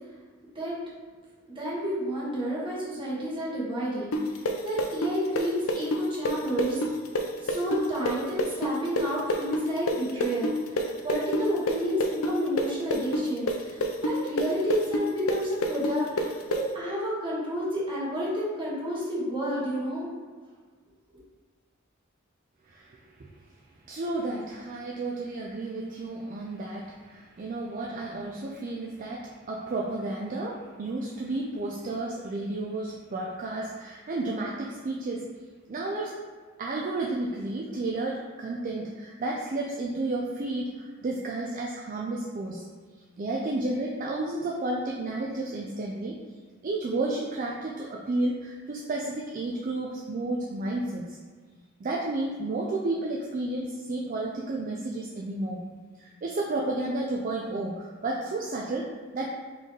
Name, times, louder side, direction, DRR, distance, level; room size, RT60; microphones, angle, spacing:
voice 1, 1.4-6.9 7.4-20.1, equal, 25° right, -6 dB, 1.3 m, -30 dB
sound 1, 4.1-11.8 12.0-16.6, left 1 dB, 90° left, 0.5 m, -27 dB
voice 2, 22.7-23.0 23.9-35.2 35.7-36.1 36.6-42.6 43.2-46.2 46.6-51.2 51.8-55.6 56.0-59.3, right 2 dB, 40° right, -2 dB, 0.4 m, -32 dB
4.2 x 3.2 x 3.7 m, 1.5 s
head